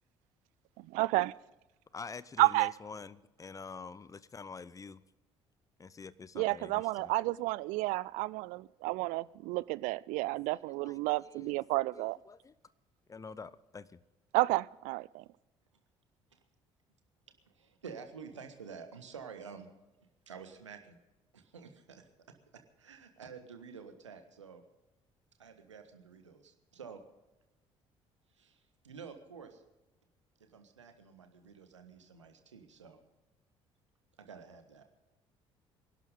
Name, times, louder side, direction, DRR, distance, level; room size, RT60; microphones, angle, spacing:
voice 1, 0.9-1.3 2.4-2.7 6.4-12.2 14.3-15.2, right 21 dB, 55° right, 0.4 m, -31 dB
voice 2, 1.9-5.0 5.8-7.1 10.5-11.6 11.9-12.5 13.1-14.0, left 5 dB, 20° left, 0.8 m, -47 dB
voice 3, 17.4-19.7 20.3-21.0 21.3-22.0 22.5-24.6 25.4-27.0 28.3-29.6 30.4-33.0 34.2-34.8, right 6 dB, 80° right, 1.5 m, -50 dB
26.0 x 12.0 x 3.7 m
figure-of-eight pair, 50°, 15 cm